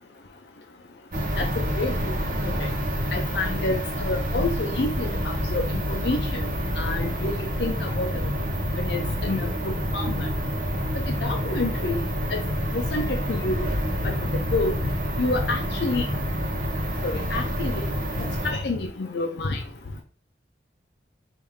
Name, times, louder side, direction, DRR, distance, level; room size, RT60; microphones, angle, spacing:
sound 1, 1.1-18.5, equal, 45° right, 1.0 m, -27 dB
voice 1, 1.8-2.1 3.1-6.4 6.8-7.3 7.6-8.3 8.8-10.3 11.2-12.0 12.3-12.4 12.7-13.7 14.0-14.1 14.5-14.7 15.2-16.0 17.0-17.8 18.2-19.6, left 2 dB, 70° left, 3 dB, 0.6 m, -28 dB
4.9 x 2.7 x 3.5 m, 0.41 s
head